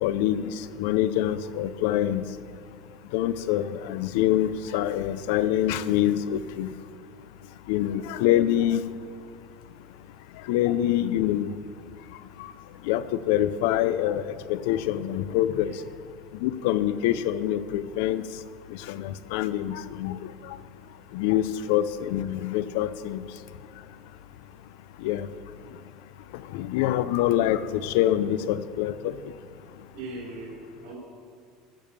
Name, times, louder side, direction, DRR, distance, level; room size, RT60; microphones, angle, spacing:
voice 1, 0.0-2.2 3.1-6.7 7.7-8.8 10.5-11.5 12.4-12.5 12.8-15.8 16.4-18.2 18.7-20.2 20.4-20.6 21.1-23.3 25.0-25.3 26.5-29.1, left 12 dB, 75° left, 15 dB, 0.5 m, -25 dB
voice 2, 29.9-31.0, right 2 dB, 80° right, -2 dB, 3.2 m, -42 dB
14.0 x 5.3 x 7.3 m, 2.1 s
cardioid pair, 160°, 0 cm